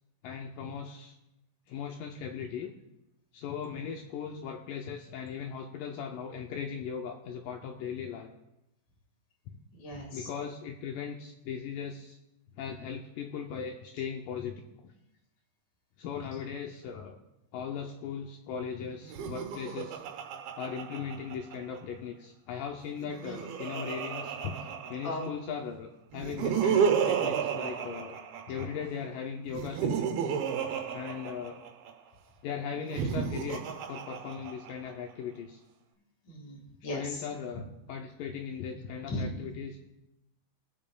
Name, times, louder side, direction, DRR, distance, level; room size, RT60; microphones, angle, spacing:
voice 1, 0.2-1.2 1.7-2.7 3.3-8.3 9.5-9.6 10.1-12.2 12.6-14.9 16.0-17.2 17.5-20.0 20.6-28.2 28.5-30.3 30.9-31.6 32.4-35.6 36.9-39.9, left 7 dB, 80° left, 3 dB, 2.0 m, -38 dB
voice 2, 9.7-10.3 23.2-23.4 25.0-25.3 36.2-37.3 39.1-39.3, left 1 dB, 55° left, 1 dB, 3.1 m, -37 dB
Laughter, 19.0-21.8 22.9-25.5 26.1-28.9 29.5-31.9 32.8-34.9, right 7 dB, 85° right, 2.8 m, -32 dB
21.5 x 7.4 x 2.3 m, 0.90 s
omnidirectional pair, 4.3 m